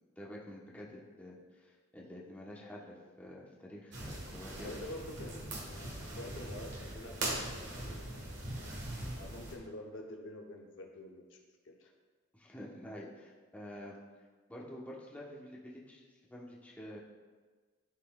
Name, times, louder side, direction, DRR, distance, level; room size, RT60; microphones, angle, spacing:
voice 1, 0.2-4.7 12.3-14.0 14.5-17.0, equal, 10° left, -5 dB, 0.9 m, -48 dB
sound 1, 3.9-9.6, right 1 dB, 60° right, 1.4 m, -41 dB
voice 2, 4.5-8.4 9.2-11.4 11.6-11.9, left 1 dB, 65° left, 2 dB, 0.7 m, -48 dB
12.0 x 4.2 x 2.3 m, 1.4 s
head